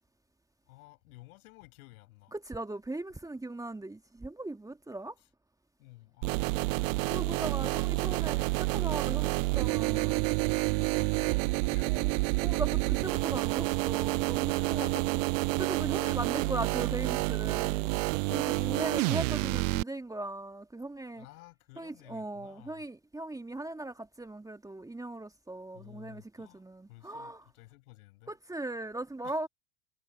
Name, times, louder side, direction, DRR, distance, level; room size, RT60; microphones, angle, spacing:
voice 1, 0.7-2.4 5.2-5.3 5.8-7.0 7.3-7.5 7.7-8.2 10.0-10.2 11.0-12.2 14.5-15.1 16.0-17.0 18.5-19.1 21.1-22.8 25.7-26.6 26.9-28.3 29.2-29.5, left 21 dB, 60° left, 6.9 m, -53 dB
voice 2, 2.3-5.2 7.1-10.2 11.8-12.1 12.4-15.2 15.6-18.0 18.3-21.2 21.8-27.4 28.3-29.5, right 2 dB, 5° right, 2.2 m, -39 dB
sound 1, 6.2-19.8, right 25 dB, 50° right, 0.8 m, -29 dB
figure-of-eight pair, 80°, 49 cm